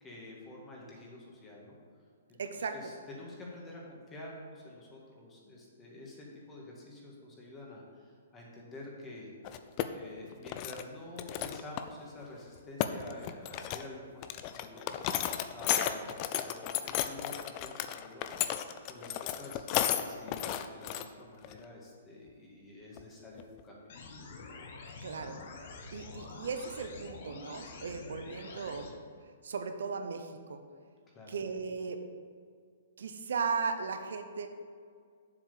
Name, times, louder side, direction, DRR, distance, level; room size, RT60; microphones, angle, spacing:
voice 1, 0.0-1.8 2.3-2.4 2.7-9.3 9.9-18.5 18.9-23.8 31.1-31.4, left 1 dB, 15° left, -3 dB, 1.8 m, -48 dB
voice 2, 2.4-2.7 25.0-25.4 25.9-28.9 29.4-30.6 31.3-32.0 33.0-34.5, right 5 dB, 75° right, 7 dB, 0.8 m, -36 dB
sound 1, 9.4-9.8 10.2-10.8 11.2-11.9 12.2-12.3 12.6-13.9 14.2-21.1 21.4-21.6 23.0-23.1 23.4-23.6, left 11 dB, 35° left, 0.4 m, -33 dB
sound 2, 23.9-28.9, left 3 dB, 55° left, 1.2 m, -47 dB
7.4 x 4.7 x 6.8 m, 2.2 s
hypercardioid pair, 150°, 0 cm